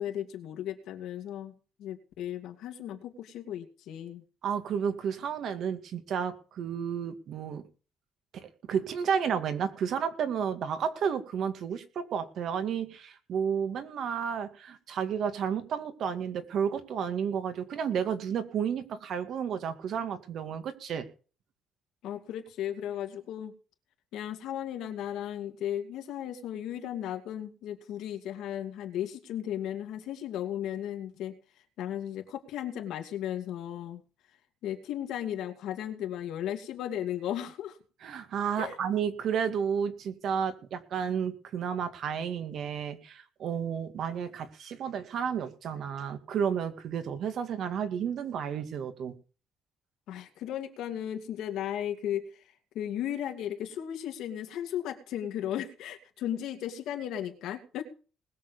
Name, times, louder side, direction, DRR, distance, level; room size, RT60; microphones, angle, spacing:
voice 1, 0.0-1.5 1.8-4.2 22.0-23.5 24.1-31.4 31.8-34.0 34.6-37.8 38.6-38.8 50.1-57.8, left 10 dB, 80° left, 7 dB, 2.4 m, -35 dB
voice 2, 4.4-7.6 8.3-21.1 38.0-49.1, right 7 dB, 60° right, 9 dB, 2.2 m, -32 dB
20.0 x 6.8 x 5.2 m, 0.37 s
cardioid pair, 115°, 0 cm